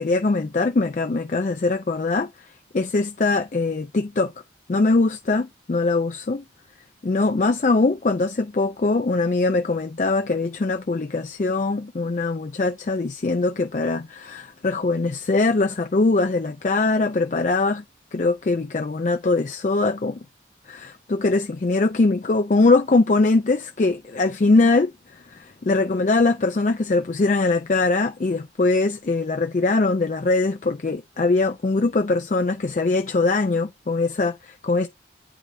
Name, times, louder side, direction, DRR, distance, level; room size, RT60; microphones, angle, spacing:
voice 1, 0.0-2.3 2.7-4.3 4.7-6.4 7.0-17.8 18.1-20.2 20.7-34.9, left 3 dB, 40° left, 0.4 m, -22 dB
8.7 x 4.9 x 2.6 m
head